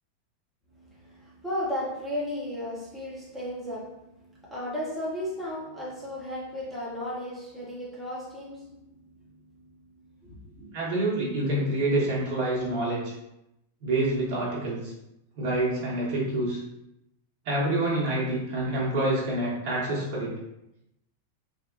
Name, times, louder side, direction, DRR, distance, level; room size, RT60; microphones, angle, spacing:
voice 1, 0.7-10.8, left 1 dB, ahead, 0.8 m, -35 dB
voice 2, 10.7-13.1 13.8-14.9 15.4-16.6 17.4-20.3, right 1 dB, 50° right, 1.1 m, -27 dB
3.4 x 2.1 x 2.6 m
figure-of-eight pair, 90°, 0 cm